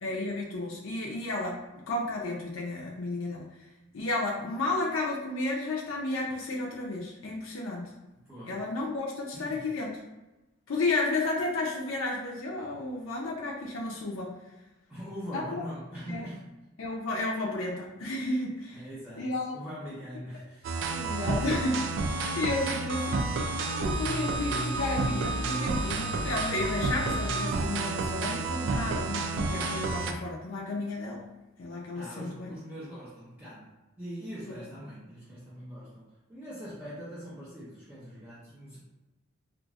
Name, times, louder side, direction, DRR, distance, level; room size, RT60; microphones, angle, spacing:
voice 1, 0.0-1.6 1.9-3.5 3.9-7.9 8.5-9.9 10.7-14.3 15.3-15.6 16.1-16.3 16.8-18.8 19.2-19.6 20.9-23.2 23.7-31.3 31.6-32.5 34.5-34.6, left 2 dB, 75° left, -3 dB, 0.5 m, -32 dB
voice 2, 8.1-8.6 9.3-9.6 14.9-16.5 18.7-21.5 31.9-38.8, equal, 10° right, -12 dB, 0.9 m, -42 dB
sound 1, 20.6-30.1, right 3 dB, 65° right, 0.3 m, -30 dB
3.9 x 2.5 x 2.3 m, 1.0 s
head